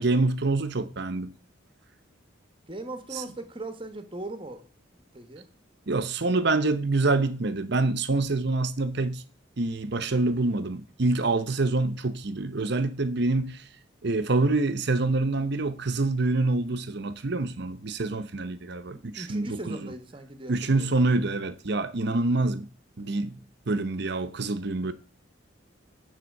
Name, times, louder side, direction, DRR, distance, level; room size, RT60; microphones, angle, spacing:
voice 1, 0.0-1.3 5.9-9.2 9.6-13.6 14.0-19.8 20.5-22.7 23.0-23.4 23.7-24.9, right 2 dB, 55° right, 0.8 m, -26 dB
voice 2, 2.7-4.6 4.9-5.5 18.9-20.9, right 2 dB, 25° right, 1.1 m, -39 dB
9.7 x 4.2 x 6.4 m
head